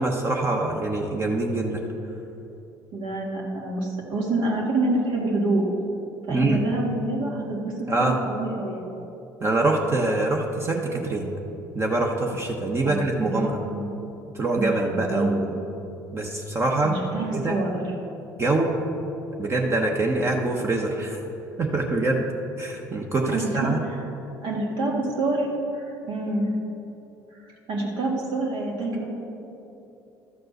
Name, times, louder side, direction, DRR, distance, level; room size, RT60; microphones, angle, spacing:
voice 1, 0.0-1.8 6.3-6.6 7.9-8.2 9.4-11.3 11.7-13.6 14.3-15.5 16.1-17.0 17.3-17.6 18.4-18.8 19.4-21.2 21.6-22.3 22.6-23.8, right 2 dB, 30° right, 0 dB, 1.0 m, -24 dB
voice 2, 2.9-5.7 6.3-7.7 8.0-9.0 12.8-13.9 14.5-14.7 15.1-15.4 16.8-17.9 23.3-24.0 24.4-25.5 25.7-26.5 27.3-29.0, right 2 dB, 70° right, -2 dB, 2.0 m, -27 dB
12.5 x 4.4 x 6.6 m, 2.9 s
supercardioid pair, 80°, 9 cm